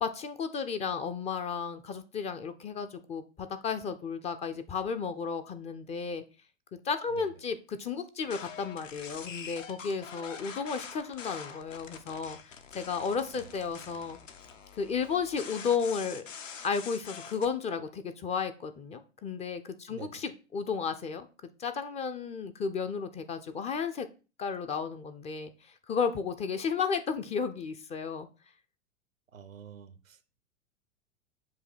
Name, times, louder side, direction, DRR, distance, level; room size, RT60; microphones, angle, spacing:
voice 1, 0.0-6.2 6.8-14.2 14.8-16.2 16.6-21.3 21.6-24.1 24.4-25.5 25.9-28.3, left 6 dB, 15° left, 0.4 m, -33 dB
sound 1, 8.2-17.5, left 6 dB, 75° left, 1.0 m, -45 dB
voice 2, 19.9-20.2 29.3-30.2, right 7 dB, 85° right, 0.8 m, -47 dB
7.3 x 2.7 x 5.5 m
figure-of-eight pair, 95°, 39 cm